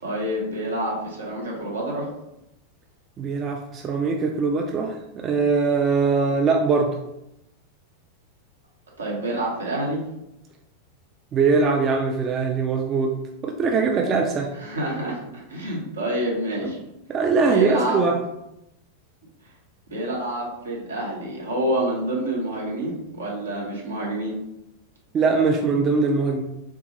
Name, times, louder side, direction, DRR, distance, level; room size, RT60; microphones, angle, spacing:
voice 1, 0.0-2.1 9.0-10.0 14.6-16.8 17.5-18.0 19.9-24.4, right 1 dB, 70° right, -3 dB, 1.0 m, -27 dB
voice 2, 3.2-5.0 5.2-7.0 11.3-13.1 13.4-14.5 16.6-16.7 17.1-18.2 25.1-26.4, right 4 dB, 25° right, 1 dB, 0.3 m, -21 dB
3.6 x 2.3 x 2.9 m, 0.86 s
figure-of-eight pair, 90°, 0 cm